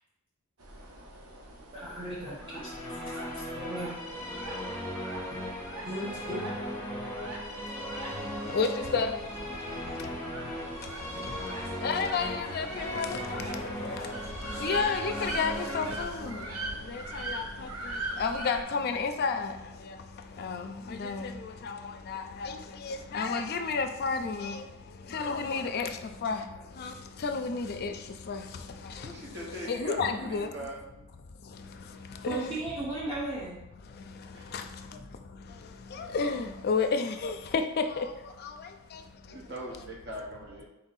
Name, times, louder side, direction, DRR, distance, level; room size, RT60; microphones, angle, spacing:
sound 1, 0.6-18.6, right 2 dB, 80° right, 0.7 m, -42 dB
voice 1, 1.7-3.9 5.9-6.5 32.3-33.6, right 2 dB, 25° right, -7 dB, 0.8 m, -36 dB
Musical instrument, 2.3-17.8, equal, 15° left, 1.1 m, -38 dB
voice 2, 8.5-9.1 11.8-13.4 13.8-13.9 14.6-16.4 16.9-17.7 18.2-19.5 20.4-24.6 25.1-25.9 26.2-26.4 26.8-26.9 27.2-27.9 28.3-28.4 29.6-30.5 32.2-32.5 34.5-34.6 35.9-37.6 37.9-38.1 38.4-38.5, left 5 dB, 45° left, 7 dB, 0.4 m, -31 dB
voice 3, 29.0-30.8 34.3-34.5 39.3-40.6, equal, 55° right, -1 dB, 0.9 m, -41 dB
4.2 x 2.7 x 4.0 m, 0.92 s
head